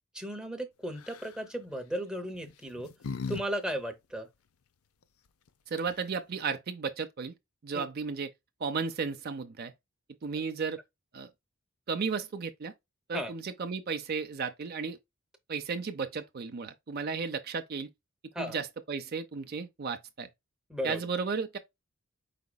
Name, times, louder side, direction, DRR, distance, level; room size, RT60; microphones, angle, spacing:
voice 1, 0.1-2.9 3.3-4.3 7.7-7.8 13.1-13.3 18.3-18.6 20.7-21.1, equal, 5° right, 0.7 m, -35 dB
sound 1, 1.0-1.4 2.3-3.4 3.7-3.8 5.5-5.6 5.8-6.2, left 5 dB, 90° left, 0.5 m, -38 dB
voice 2, 5.7-7.3 7.6-8.3 8.6-9.7 10.2-10.8 11.1-11.3 11.9-12.7 13.1-15.0 15.5-17.9 18.4-20.3 20.8-21.6, right 5 dB, 45° right, 0.5 m, -34 dB
5.0 x 3.9 x 2.2 m
head